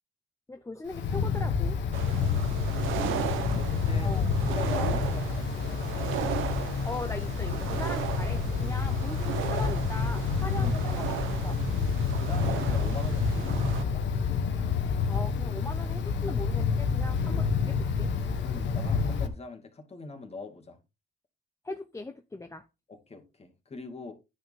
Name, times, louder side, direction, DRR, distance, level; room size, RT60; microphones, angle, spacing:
voice 1, 0.5-1.8 4.0-4.3 6.8-11.7 15.1-18.1 21.6-22.6, left 2 dB, 15° left, 0.7 m, -40 dB
Wind, 0.9-19.3, left 5 dB, 65° left, 1.4 m, -29 dB
sound 1, 1.9-13.8, right 9 dB, 90° right, 1.2 m, -35 dB
voice 2, 2.1-2.6 2.9-4.1 4.4-6.0 10.6-10.8 12.0-14.0 17.2-17.3 18.4-20.8 22.9-24.1, left 3 dB, 30° left, 2.4 m, -43 dB
9.9 x 6.3 x 3.6 m
cardioid pair, 90°, 20 cm